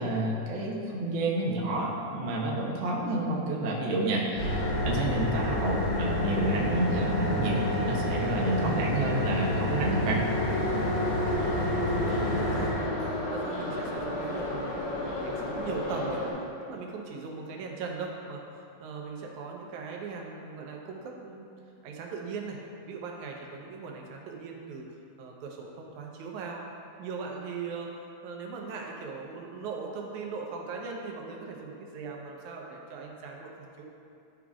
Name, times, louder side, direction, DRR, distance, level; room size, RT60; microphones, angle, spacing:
voice 1, 0.0-10.2, right 2 dB, 65° right, -3 dB, 1.2 m, -29 dB
sound 1, 4.4-12.7, left 1 dB, 65° left, 2.7 m, -29 dB
Subway metro underground, 10.2-16.3, left 1 dB, 90° left, 2.6 m, -32 dB
voice 2, 11.8-16.2 16.6-21.5 21.8-26.6 27.0-27.9 28.2-33.8, right 4 dB, 80° right, 0 dB, 2.2 m, -39 dB
11.5 x 5.0 x 2.4 m, 2.7 s
omnidirectional pair, 3.4 m